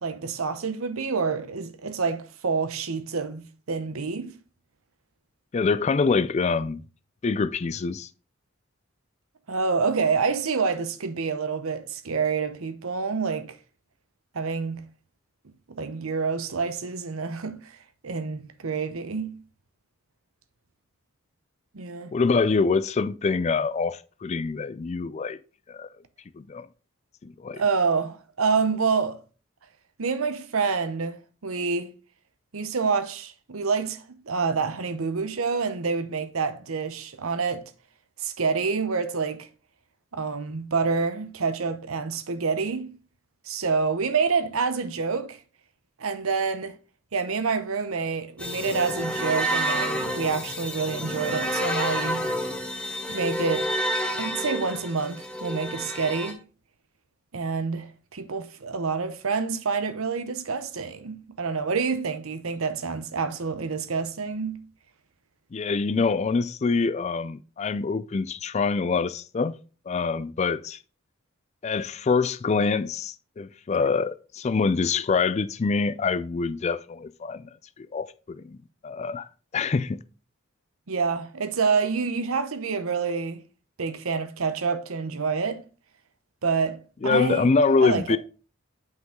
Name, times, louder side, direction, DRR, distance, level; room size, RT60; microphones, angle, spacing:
voice 1, 0.0-4.3 9.5-13.6 14.3-14.8 15.7-17.8 18.0-19.4 21.7-22.1 27.5-29.2 30.0-31.9 32.5-37.7 38.2-39.5 40.1-42.9 43.5-45.4 46.0-46.8 47.1-52.3 53.1-53.7 54.2-56.4 57.3-64.6 80.9-83.4 83.8-85.6 86.4-88.2, right 5 dB, 80° right, 0.8 m, -27 dB
voice 2, 5.5-6.8 7.2-8.1 22.1-25.4 25.7-25.9 26.4-26.7 27.2-27.6 65.5-69.5 69.9-70.8 71.6-77.5 77.8-78.6 78.8-79.3 79.5-80.0 87.0-88.2, left 4 dB, 30° left, 0.3 m, -25 dB
sound 1, 48.4-56.3, equal, 5° left, 0.9 m, -29 dB
7.7 x 5.8 x 3.7 m
head